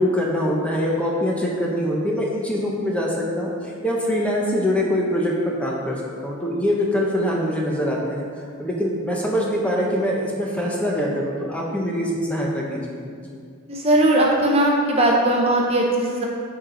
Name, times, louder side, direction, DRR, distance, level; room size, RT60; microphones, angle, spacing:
voice 1, 0.0-8.2 8.6-13.4, equal, 5° left, -3 dB, 0.9 m, -24 dB
voice 2, 13.7-16.3, right 1 dB, 30° right, -1 dB, 0.8 m, -19 dB
9.1 x 4.8 x 3.9 m, 2.1 s
head